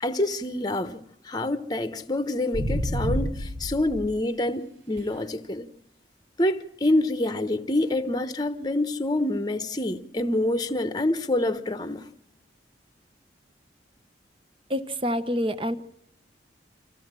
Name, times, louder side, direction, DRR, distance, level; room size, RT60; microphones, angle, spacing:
voice 1, 0.0-5.7 6.4-12.0, left 1 dB, 20° left, 1.0 m, -27 dB
sound 1, 2.5-4.1 5.0-5.1 11.0-11.1, equal, 90° right, 3.4 m, -29 dB
voice 2, 14.7-15.8, equal, 30° right, 1.0 m, -27 dB
25.5 x 15.5 x 7.5 m
head